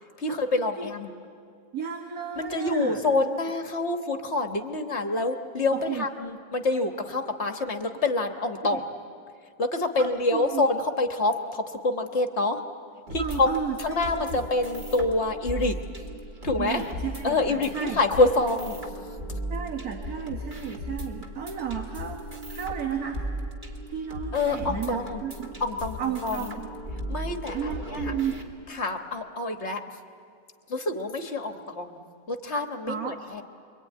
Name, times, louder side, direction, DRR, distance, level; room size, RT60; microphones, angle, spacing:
voice 1, 0.2-1.1 2.4-8.9 9.6-12.6 13.1-13.5 13.8-15.8 16.4-16.8 17.2-18.8 24.3-25.2 25.6-26.5 27.1-28.1 28.7-29.8 30.7-33.4, left 2 dB, 40° left, 5 dB, 1.5 m, -27 dB
voice 2, 1.7-3.0 5.7-6.1 8.7-8.8 10.0-10.6 13.1-14.4 16.6-18.0 19.5-23.3 23.9-25.5 26.0-26.7 27.5-28.5 32.9-33.2, right 8 dB, 55° right, 3 dB, 1.9 m, -33 dB
sound 1, 13.1-28.4, equal, 25° right, 2.3 m, -37 dB
27.0 x 23.0 x 9.3 m, 2.3 s
omnidirectional pair, 2.0 m